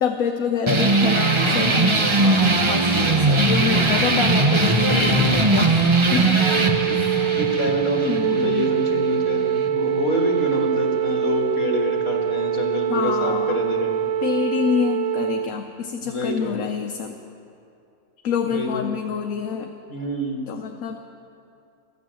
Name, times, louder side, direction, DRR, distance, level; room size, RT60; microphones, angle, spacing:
voice 1, 0.0-6.4 6.9-7.2 8.0-8.6 12.9-13.6 14.2-17.2 18.2-19.7 20.5-21.0, left 7 dB, 80° left, 3 dB, 1.2 m, -26 dB
sound 1, 0.7-9.7, right 3 dB, 30° right, 0.6 m, -20 dB
voice 2, 4.9-5.2 7.3-14.0 16.0-16.6 18.4-18.9 19.9-20.4, left 1 dB, 60° left, 1 dB, 2.1 m, -26 dB
Wind instrument woodwind instrument, 6.4-15.5, right 9 dB, 80° right, 1.1 m, -24 dB
14.0 x 9.3 x 7.6 m, 2.5 s
omnidirectional pair, 1.5 m